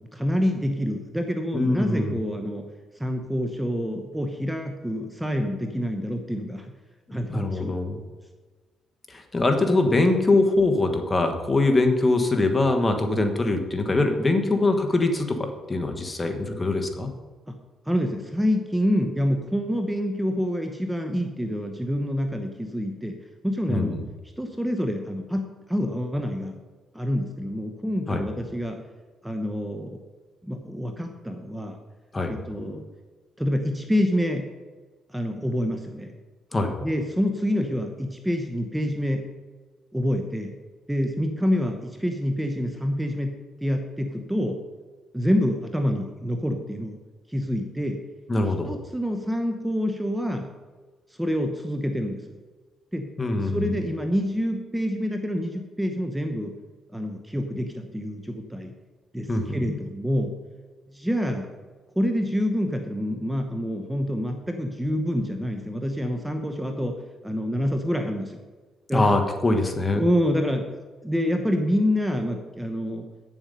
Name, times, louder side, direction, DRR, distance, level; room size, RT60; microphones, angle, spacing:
voice 1, 0.1-2.6 3.0-6.7 7.1-7.7 17.5-17.6 17.9-23.2 23.4-24.0 24.4-26.6 26.9-28.8 29.2-30.0 30.4-31.8 32.3-32.8 33.4-34.5 35.1-36.1 36.8-39.2 39.9-40.5 40.9-43.3 43.6-44.6 45.1-47.0 47.3-48.0 48.7-50.5 51.2-52.2 52.9-53.1 53.3-56.5 56.9-58.7 59.1-60.3 60.9-61.5 62.0-66.9 67.2-68.4 68.9-69.2 69.9-70.7 71.0-73.0, equal, 5° right, 5 dB, 0.9 m, -27 dB
voice 2, 1.5-2.2 7.3-8.0 9.1-17.1 23.7-24.0 28.1-28.2 32.1-32.3 36.5-36.7 48.3-48.7 53.2-53.6 59.3-59.6 68.9-70.0, left 2 dB, 20° left, 5 dB, 1.3 m, -23 dB
8.9 x 7.3 x 5.4 m, 1.4 s
cardioid pair, 90°, 0 cm